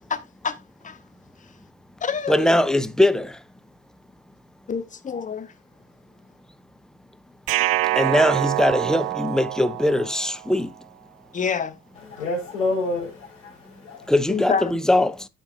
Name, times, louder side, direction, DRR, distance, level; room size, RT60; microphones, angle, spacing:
voice 1, 0.1-0.6 0.8-1.0 2.0-2.5 4.7-5.5 11.3-11.8 14.3-14.8, left 6 dB, 20° left, 1.3 m, -27 dB
voice 2, 2.3-3.4 8.0-10.7 14.1-15.3, left 1 dB, ahead, 0.5 m, -21 dB
sound 1, 7.5-10.6, right 17 dB, 45° right, 0.6 m, -25 dB
voice 3, 12.1-14.1, left 2 dB, 70° left, 5.0 m, -28 dB
9.8 x 7.2 x 2.7 m
hypercardioid pair, 80°, 37 cm